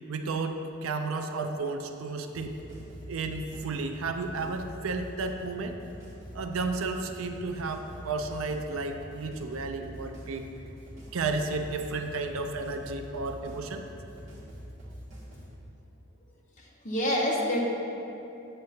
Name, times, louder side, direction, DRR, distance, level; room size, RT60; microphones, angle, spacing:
voice 1, 0.1-2.5 3.1-5.7 6.3-10.5 11.1-13.8, right 3 dB, 70° right, 6 dB, 0.5 m, -32 dB
sound 1, 2.3-15.5, equal, 35° right, 1.8 m, -45 dB
voice 2, 16.6-17.7, equal, 35° left, -2 dB, 1.0 m, -27 dB
7.9 x 7.9 x 2.8 m, 2.9 s
head